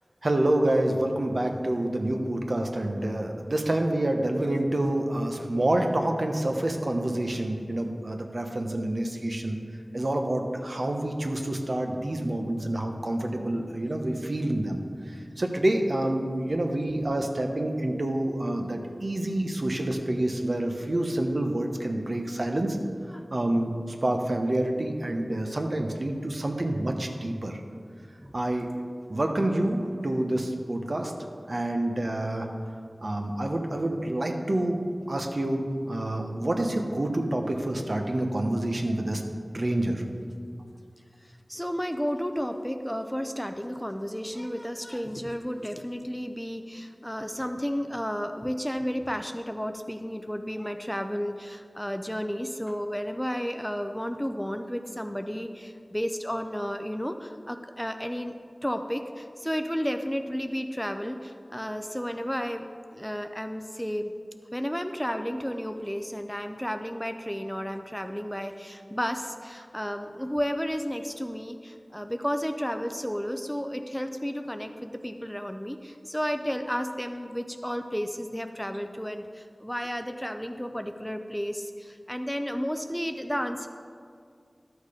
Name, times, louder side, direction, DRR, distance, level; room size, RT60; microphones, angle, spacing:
voice 1, 0.2-9.6 9.9-14.8 15.1-22.8 23.3-27.6 28.3-28.7 29.1-31.1 31.5-32.5 33.0-34.8 35.1-39.2 39.5-40.0, right 1 dB, 60° right, 3 dB, 1.0 m, -27 dB
voice 2, 41.5-58.3 58.6-64.1 64.5-83.7, equal, 5° left, 7 dB, 0.5 m, -32 dB
12.0 x 6.4 x 5.0 m, 2.3 s
wide cardioid pair, 60°, 0 cm